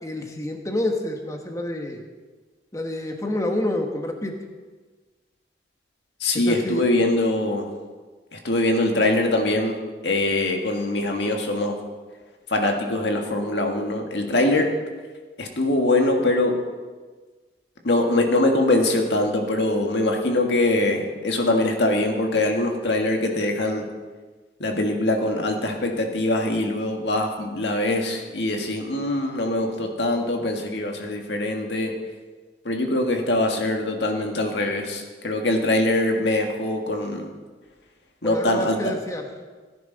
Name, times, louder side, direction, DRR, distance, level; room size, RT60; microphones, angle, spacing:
voice 1, 0.0-2.0 2.7-4.4 6.5-6.8 38.2-39.2, left 1 dB, 20° left, 3 dB, 1.1 m, -28 dB
voice 2, 6.2-7.7 8.3-9.8 10.0-11.8 12.5-14.7 15.4-16.6 17.8-23.8 24.6-31.9 32.6-37.3 38.2-38.8, left 2 dB, 85° left, 2 dB, 1.8 m, -23 dB
16.0 x 10.0 x 4.0 m, 1.4 s
head